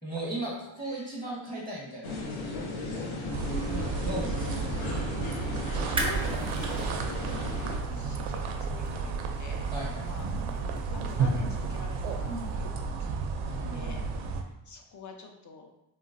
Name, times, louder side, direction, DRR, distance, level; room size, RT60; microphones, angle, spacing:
voice 1, 0.0-2.4 3.7-4.6 7.8-8.3 9.7-10.2 13.5-14.1, right 1 dB, 10° left, -5 dB, 1.0 m, -37 dB
sound 1, 2.0-7.8, left 2 dB, 75° left, 0.8 m, -35 dB
sound 2, 3.3-14.4, right 4 dB, 80° right, 0.6 m, -32 dB
voice 2, 4.7-5.3 5.9-14.4 14.7-15.7, left 3 dB, 35° left, 3 dB, 0.6 m, -47 dB
sound 3, 5.8-12.5, right 1 dB, 10° right, 0.5 m, -41 dB
3.7 x 2.0 x 2.5 m, 0.89 s
cardioid pair, 90°, 50 cm